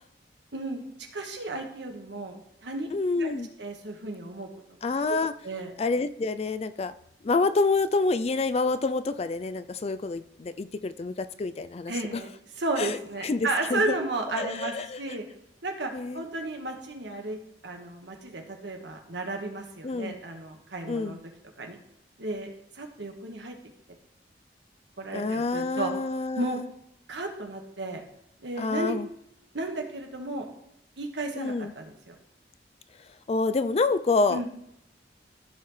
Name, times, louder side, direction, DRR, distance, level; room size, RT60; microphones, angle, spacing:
voice 1, 0.5-0.8 1.1-2.9 3.2-3.3 3.6-4.5 5.4-5.7 11.9-12.3 12.6-15.2 15.6-17.4 17.6-21.2 21.6-21.8 22.2-22.5 22.7-23.5 25.0-25.9 26.4-26.6 27.1-28.0 28.4-29.0 29.5-30.5 31.0-32.1 34.3-34.5, right 2 dB, 85° right, 3 dB, 1.5 m, -33 dB
voice 2, 2.9-3.5 4.8-5.3 5.8-6.9 7.2-12.2 12.8-13.0 13.2-14.0 14.3-15.2 15.9-16.2 19.8-20.1 20.9-21.2 25.1-26.6 28.6-29.1 31.4-31.7 33.3-34.4, left 3 dB, 35° left, 12 dB, 0.4 m, -27 dB
14.5 x 5.8 x 3.2 m, 0.80 s
head